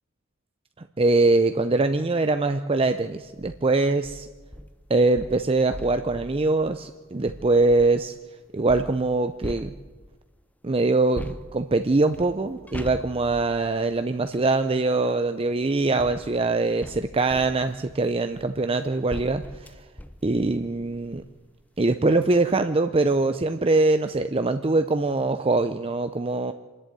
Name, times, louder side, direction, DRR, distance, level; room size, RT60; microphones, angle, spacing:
voice 1, 1.0-4.3 4.9-8.2 8.5-9.7 10.6-19.8 20.2-21.2 21.8-26.5, right 3 dB, 25° right, 9 dB, 0.6 m, -23 dB
sound 1, 3.2-3.6 4.0-8.1 8.7-10.2 11.1-14.5 15.5-21.4 21.8-21.9 22.2-22.4, equal, 5° left, 0.7 m, -42 dB
26.5 x 11.0 x 9.1 m, 1.3 s
head